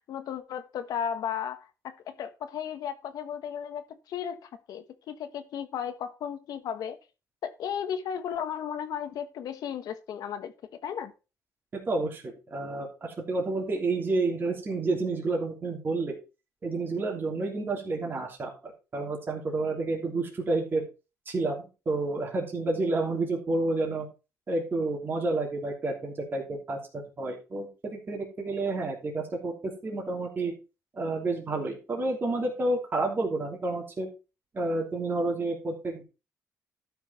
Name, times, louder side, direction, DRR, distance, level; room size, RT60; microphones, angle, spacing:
voice 1, 0.1-7.0 7.4-10.5 10.8-11.1, left 8 dB, 75° left, 10 dB, 1.4 m, -35 dB
voice 2, 11.7-16.2 16.6-20.9 21.3-24.1 24.5-30.5 30.9-34.1 34.5-36.0, right 2 dB, 30° right, -1 dB, 3.1 m, -30 dB
12.5 x 5.8 x 4.3 m, 0.31 s
cardioid pair, 145°, 7 cm